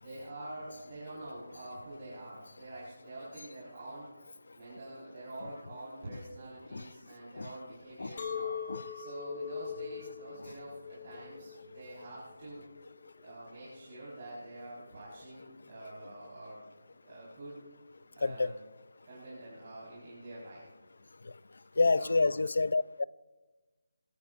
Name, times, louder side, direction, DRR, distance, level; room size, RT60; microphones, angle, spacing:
voice 1, 0.0-4.1 4.5-12.6 13.2-16.6 17.0-17.6 18.1-18.5 19.0-20.7 21.8-22.3, right 1 dB, 25° right, 4.3 m, -46 dB
Chink clink, 8.2-13.4, left 6 dB, 35° left, 1.5 m, -41 dB
voice 2, 21.8-23.0, left 3 dB, 60° left, 0.4 m, -28 dB
24.0 x 12.0 x 2.5 m
hypercardioid pair, 180°, 0 cm